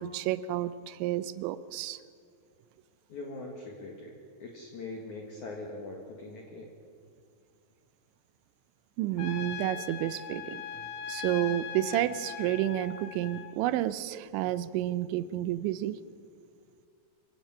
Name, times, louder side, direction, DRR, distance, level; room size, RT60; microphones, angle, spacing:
voice 1, 0.0-2.0 9.0-10.6 11.1-16.0, right 13 dB, 80° right, 3.0 m, -30 dB
voice 2, 3.1-4.1 4.4-6.7, left 2 dB, 55° left, 2.5 m, -41 dB
Trumpet, 9.2-13.5, left 8 dB, 75° left, 3.1 m, -40 dB
25.0 x 16.5 x 7.4 m
omnidirectional pair, 5.3 m